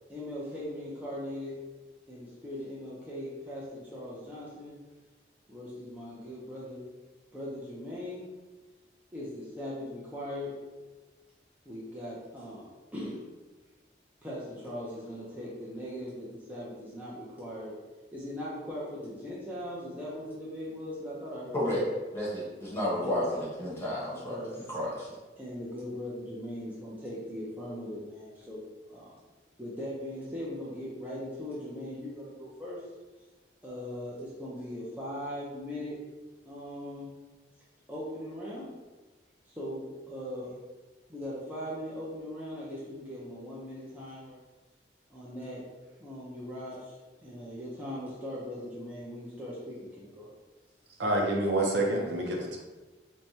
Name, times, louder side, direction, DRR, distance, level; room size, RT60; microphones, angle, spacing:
voice 1, 0.1-1.6 2.1-4.8 5.5-6.9 7.3-8.3 9.1-10.6 11.7-13.2 14.2-17.8 18.1-22.4 23.0-23.2 24.1-24.6 25.4-29.2 29.6-32.9 33.6-36.0 36.5-37.1 37.9-38.7 39.5-40.6 41.1-44.4 45.1-45.7 46.0-50.3, left 1 dB, 10° right, -8 dB, 0.5 m, -40 dB
voice 2, 22.1-24.4 24.7-25.1, left 1 dB, 15° left, -7 dB, 1.0 m, -31 dB
voice 3, 51.0-52.6, right 1 dB, 80° right, 0 dB, 0.6 m, -27 dB
4.5 x 2.2 x 2.7 m, 1.2 s
head